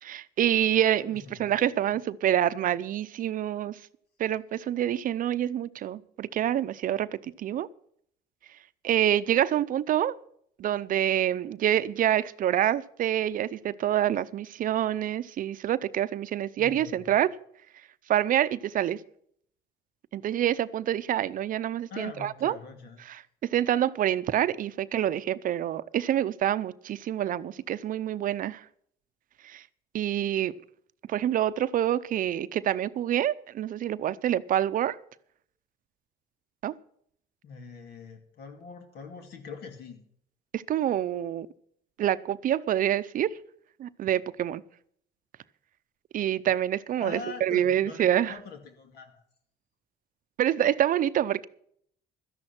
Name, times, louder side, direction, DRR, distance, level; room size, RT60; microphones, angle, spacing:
voice 1, 0.0-3.8 4.2-7.7 8.8-10.1 10.6-17.3 18.1-19.0 20.1-22.6 23.5-28.6 29.4-29.6 29.9-30.5 31.1-35.0 36.6-36.7 40.5-41.5 42.0-43.3 43.8-44.6 46.1-48.3 50.4-51.5, right 11 dB, 55° right, 0.6 m, -27 dB
voice 2, 1.1-2.0 16.6-17.2 21.9-23.0 37.4-40.0 47.0-49.2, left 5 dB, 70° left, 2.4 m, -43 dB
13.0 x 10.5 x 6.0 m
cardioid pair, 110°, 17 cm